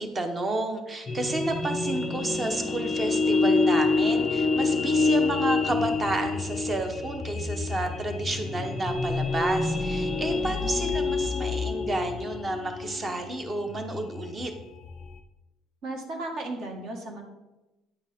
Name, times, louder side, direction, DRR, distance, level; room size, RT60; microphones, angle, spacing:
voice 1, 0.0-14.5, right 2 dB, 20° right, 6 dB, 0.9 m, -31 dB
sound 1, 1.1-15.2, left 3 dB, 20° left, 0.6 m, -27 dB
voice 2, 15.8-17.2, right 2 dB, 50° right, 2 dB, 1.8 m, -35 dB
10.0 x 8.1 x 3.6 m, 1.0 s
cardioid pair, 170°, 0 cm